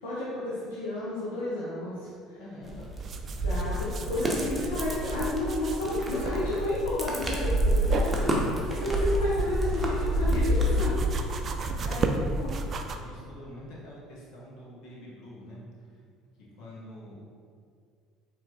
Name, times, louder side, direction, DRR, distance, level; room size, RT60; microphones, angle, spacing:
voice 1, 0.0-2.4 3.4-11.3 11.8-12.0 12.4-12.5, left 1 dB, 80° left, -10 dB, 0.9 m, -31 dB
voice 2, 2.4-2.9 3.6-4.4 7.1-7.2 11.6-15.6 15.9-16.0 16.5-17.2, left 1 dB, 65° left, -5 dB, 1.2 m, -46 dB
sound 1, 2.6-11.0, equal, 15° right, 0.9 m, -28 dB
sound 2, 3.0-13.0, right 3 dB, 45° right, 0.4 m, -34 dB
4.5 x 3.0 x 3.9 m, 2.2 s
hypercardioid pair, 65°, 0 cm